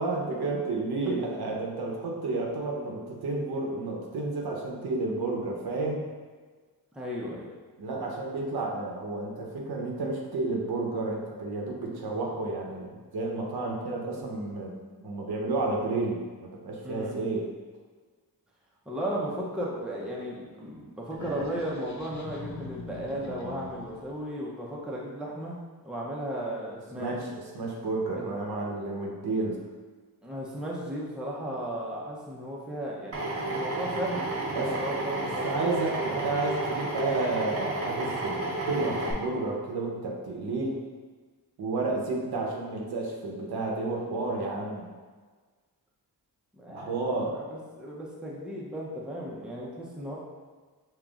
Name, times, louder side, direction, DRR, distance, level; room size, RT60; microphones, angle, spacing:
voice 1, 0.0-6.0 7.8-14.7 15.0-17.4 27.0-27.3 27.5-29.6 34.5-34.8 35.2-40.8 41.6-44.9 46.7-47.4, right 3 dB, 75° right, -2 dB, 0.9 m, -31 dB
voice 2, 6.9-7.5 16.8-17.2 18.9-25.6 25.8-27.2 28.1-28.3 30.2-33.2 33.5-35.9 46.5-47.0 47.3-50.2, right 1 dB, ahead, -4 dB, 0.6 m, -35 dB
sound 1, 21.1-24.2, left 4 dB, 45° left, 0.6 m, -42 dB
Drill, 33.1-39.1, right 2 dB, 35° right, 0.7 m, -31 dB
5.5 x 2.9 x 2.4 m, 1.4 s
wide cardioid pair, 130°, 39 cm